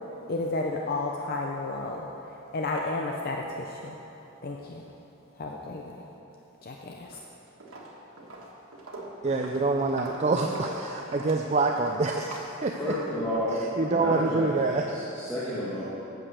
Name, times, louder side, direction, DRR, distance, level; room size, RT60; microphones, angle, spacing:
voice 1, 0.3-2.1 2.5-3.4 3.8-4.0 4.4-4.8 5.4-5.8 6.6-7.2, left 2 dB, 45° left, 0 dB, 0.6 m, -31 dB
Walk footsteps, 7.0-7.3 7.6-13.6, right 2 dB, 80° right, 1.4 m, -43 dB
voice 2, 9.2-13.0 13.8-15.0, right 3 dB, 30° right, 2 dB, 0.4 m, -26 dB
voice 3, 12.8-15.8, equal, 15° left, -10 dB, 1.6 m, -31 dB
8.8 x 7.3 x 6.7 m, 3.0 s
head